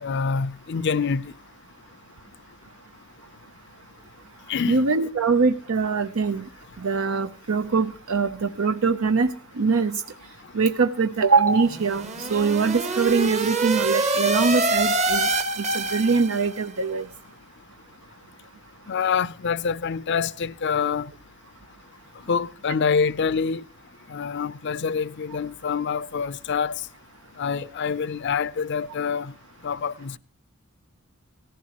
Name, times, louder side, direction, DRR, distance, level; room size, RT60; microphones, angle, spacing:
voice 1, 0.0-1.3 4.5-4.8 18.9-21.1 22.3-23.6 24.1-26.8 27.4-29.3 29.6-30.2, left 6 dB, 55° left, 0.5 m, -26 dB
voice 2, 4.7-6.5 6.8-10.0 10.5-15.3 15.6-17.1, right 4 dB, 75° right, 0.7 m, -23 dB
sound 1, 11.6-16.6, right 2 dB, 35° right, 1.1 m, -25 dB
17.5 x 15.0 x 2.9 m
head